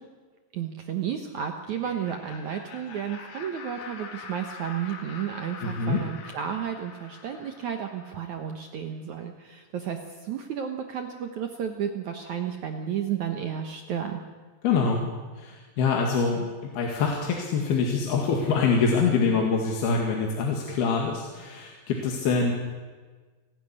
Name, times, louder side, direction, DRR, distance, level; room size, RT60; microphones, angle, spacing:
voice 1, 0.5-14.2, right 8 dB, 65° right, 5 dB, 1.9 m, -32 dB
Laughter, 1.6-8.4, left 5 dB, 90° left, 5.0 m, -44 dB
voice 2, 5.6-6.0 14.6-15.1 15.4-22.5, left 5 dB, 65° left, 0 dB, 3.9 m, -25 dB
29.5 x 12.0 x 9.9 m, 1.4 s
omnidirectional pair, 4.9 m